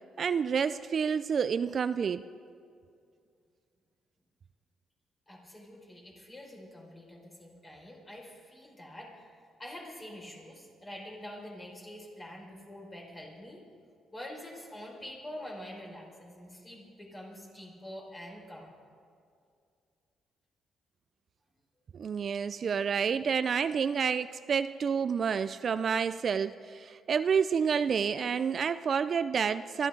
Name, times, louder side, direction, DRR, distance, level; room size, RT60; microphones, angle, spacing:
voice 1, 0.2-2.2 21.9-29.9, right 6 dB, 50° right, 13 dB, 0.4 m, -29 dB
voice 2, 5.3-9.3 9.6-13.6 14.1-18.9, left 1 dB, 25° left, -1 dB, 5.2 m, -46 dB
23.0 x 14.0 x 3.8 m, 2.3 s
cardioid pair, 90°, 0 cm